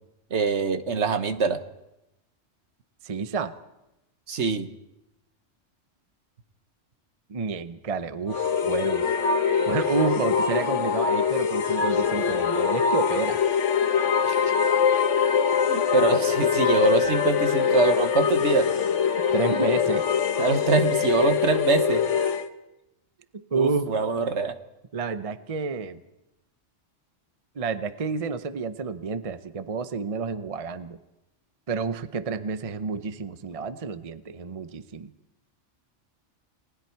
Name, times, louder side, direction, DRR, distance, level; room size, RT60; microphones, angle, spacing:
voice 1, 0.3-1.6 4.3-4.7 14.3-14.5 15.7-18.7 20.4-22.0 23.5-24.6, right 5 dB, 65° right, 9 dB, 1.4 m, -24 dB
voice 2, 3.0-3.5 7.3-9.0 9.7-13.4 19.3-20.1 23.3-23.9 24.9-26.0 27.5-31.0 31.7-35.1, right 4 dB, 35° right, 11 dB, 0.7 m, -29 dB
sound 1, 8.3-22.5, left 7 dB, 75° left, 1.4 m, -23 dB
30.0 x 19.5 x 4.6 m, 0.92 s
omnidirectional pair, 1.3 m